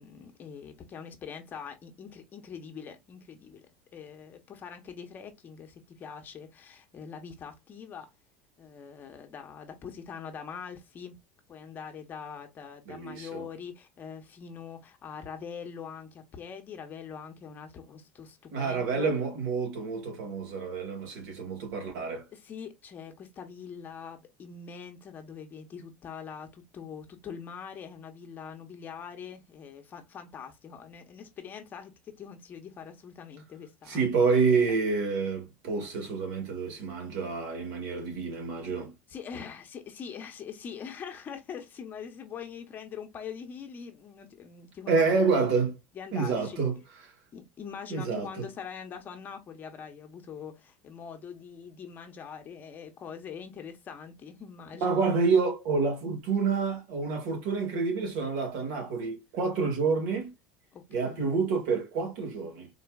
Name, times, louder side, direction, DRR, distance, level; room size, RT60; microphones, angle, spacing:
voice 1, 0.0-8.1 8.6-11.2 11.5-19.2 22.3-34.0 34.5-34.6 39.1-45.5 45.9-46.6 47.3-55.1 60.7-61.3, left 7 dB, 35° left, 0.9 m, -43 dB
voice 2, 12.9-13.4 18.5-22.3 33.9-38.9 44.9-45.8 46.1-46.8 47.9-48.4 54.8-60.3 60.9-62.7, right 4 dB, 70° right, 1.5 m, -28 dB
3.9 x 2.3 x 2.2 m
supercardioid pair, 115°, 5 cm